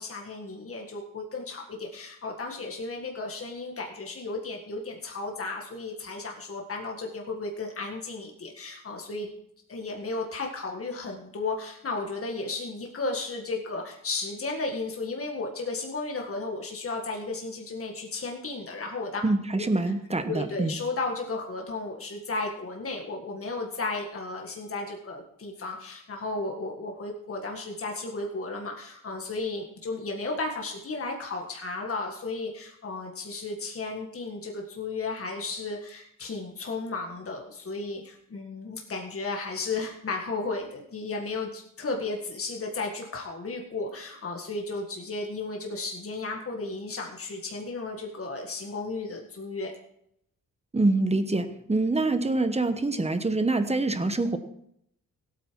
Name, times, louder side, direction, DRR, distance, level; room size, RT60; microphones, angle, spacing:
voice 1, 0.0-9.3 9.7-19.2 19.5-19.6 20.3-49.7, left 3 dB, 40° left, 1 dB, 1.8 m, -34 dB
voice 2, 19.2-20.8 50.7-54.4, right 2 dB, 20° right, 9 dB, 1.1 m, -25 dB
17.0 x 8.7 x 4.7 m, 0.73 s
wide cardioid pair, 110°, 33 cm